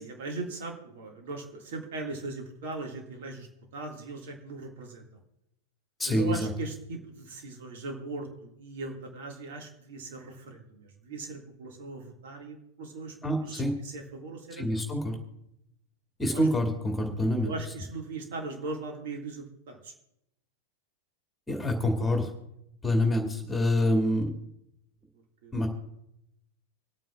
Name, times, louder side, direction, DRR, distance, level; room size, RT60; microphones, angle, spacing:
voice 1, 0.0-3.5 3.7-5.1 6.1-13.1 13.5-14.6 16.3-16.5 17.4-19.9 25.4-25.5, right 3 dB, 55° right, 2 dB, 2.0 m, -39 dB
voice 2, 6.0-6.5 13.2-13.7 14.6-15.2 16.2-17.5 21.5-22.3 22.8-24.3 25.5-25.7, left 1 dB, 10° left, 2 dB, 2.3 m, -26 dB
26.5 x 9.1 x 2.4 m, 0.83 s
figure-of-eight pair, 90°, 0 cm